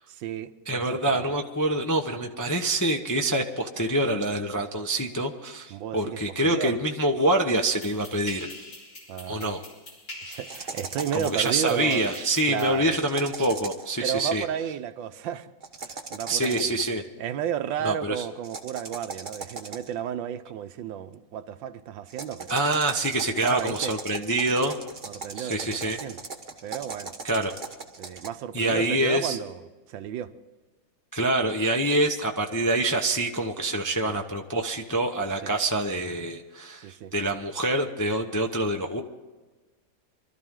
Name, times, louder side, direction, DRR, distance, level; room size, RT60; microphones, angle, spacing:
voice 1, 0.1-1.2 5.7-6.8 9.1-9.6 10.2-12.0 12.5-13.0 14.0-15.5 15.8-16.8 17.2-22.6 23.4-23.9 25.1-26.2 26.6-27.1 28.0-29.6 29.9-30.3 34.0-34.2 35.4-35.5 36.8-37.1, right 9 dB, 80° right, 1.5 m, -33 dB
voice 2, 0.7-8.5 9.3-9.6 11.1-14.4 16.3-17.0 17.8-18.2 22.5-24.8 25.3-26.0 27.2-27.5 28.5-29.4 31.1-39.0, right 1 dB, 20° left, 0.5 m, -26 dB
sound 1, 7.7-12.8, left 2 dB, 60° left, 4.4 m, -44 dB
sound 2, 10.5-11.5 12.9-13.9 15.6-16.9 18.4-20.0 22.1-28.3, right 4 dB, 30° right, 1.1 m, -39 dB
24.0 x 13.0 x 3.7 m
omnidirectional pair, 2.0 m